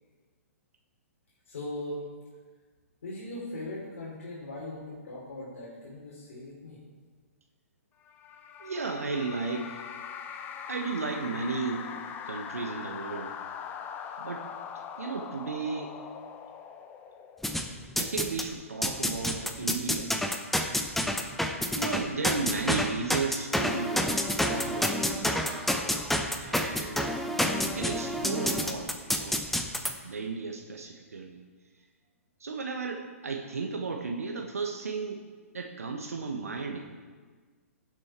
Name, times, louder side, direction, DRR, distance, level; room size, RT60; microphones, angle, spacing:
voice 1, 1.5-2.0 3.0-6.8, left 1 dB, 60° left, -6 dB, 3.6 m, -39 dB
sound 1, 8.0-17.7, left 7 dB, 20° left, 1.0 m, -41 dB
voice 2, 8.6-9.7 10.7-13.4 14.2-14.5 15.0-16.0 18.0-20.1 21.7-24.1 24.4-25.6 26.4-27.2 27.6-29.4 30.0-31.4 32.4-35.2 35.5-36.8, right 4 dB, 75° right, 3 dB, 1.2 m, -34 dB
sound 2, 17.4-18.5 18.8-29.9, left 1 dB, ahead, 0.8 m, -29 dB
16.5 x 7.6 x 4.5 m, 1.5 s
figure-of-eight pair, 115°, 8 cm